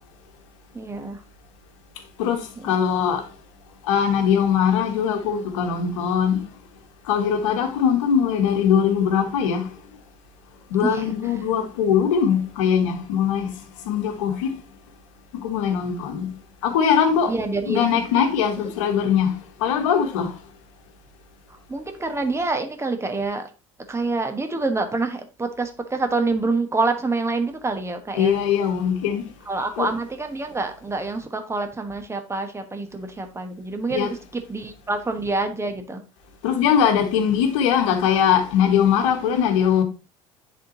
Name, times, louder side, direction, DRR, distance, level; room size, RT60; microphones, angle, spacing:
voice 1, 0.7-1.2 2.6-2.8 10.8-11.1 17.3-17.9 21.7-23.5 23.9-28.4 29.5-36.0, right 3 dB, 15° right, 1.3 m, -27 dB
voice 2, 2.2-3.3 3.9-6.4 7.1-9.7 10.7-13.5 13.8-14.5 15.3-16.3 16.6-17.3 17.7-19.3 19.6-20.3 28.1-29.3 29.8-29.9 33.9-34.1 36.4-39.8, left 8 dB, 70° left, 1.2 m, -21 dB
10.0 x 3.7 x 2.8 m
hypercardioid pair, 70°, 17 cm